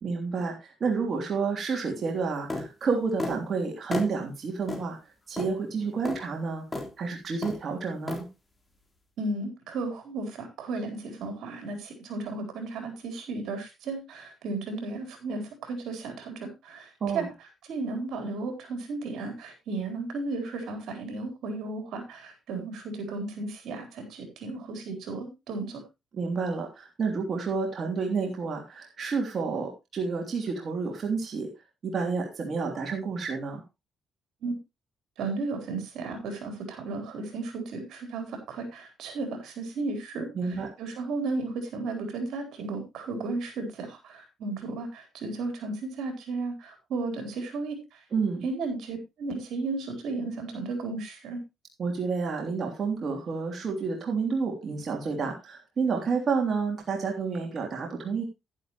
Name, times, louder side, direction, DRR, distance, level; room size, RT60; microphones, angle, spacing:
voice 1, 0.0-5.0 5.3-6.6 7.0-8.3 17.0-17.3 26.1-31.5 31.8-33.6 40.4-40.7 48.1-48.4 51.8-58.2, right 4 dB, 50° right, 1 dB, 3.1 m, -30 dB
sound 1, 2.5-2.7 3.2-3.4 3.9-4.1 4.7-4.8 5.4-5.5 6.0-6.2 6.7-6.9 7.4-7.6 8.1-8.2, left 2 dB, 15° left, 3.6 m, -32 dB
voice 2, 9.2-17.3 17.7-25.8 34.4-34.6 35.2-48.0 48.4-51.4, right 3 dB, 80° right, 5 dB, 4.1 m, -34 dB
11.0 x 10.5 x 3.1 m, 0.23 s
cardioid pair, 90°, 0 cm